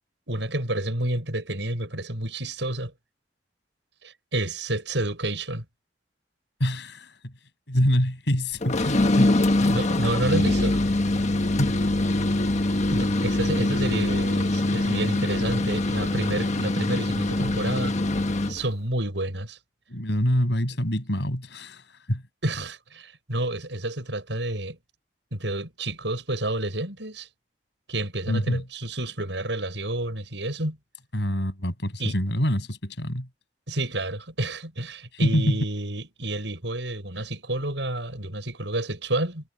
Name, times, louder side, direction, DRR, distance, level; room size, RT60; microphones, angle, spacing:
voice 1, 0.3-2.9 4.0-5.7 9.6-10.8 12.9-18.0 18.5-19.6 22.4-24.8 25.3-27.3 27.9-30.8 32.0-32.2 33.7-39.5, right 1 dB, 85° right, 6.9 m, -29 dB
voice 2, 6.6-7.3 7.7-9.7 11.6-11.7 19.9-21.8 22.1-22.2 28.3-28.6 31.1-33.3 35.2-35.6, equal, 75° left, 7.0 m, -25 dB
sound 1, 8.6-18.6, left 2 dB, 40° left, 1.4 m, -23 dB
head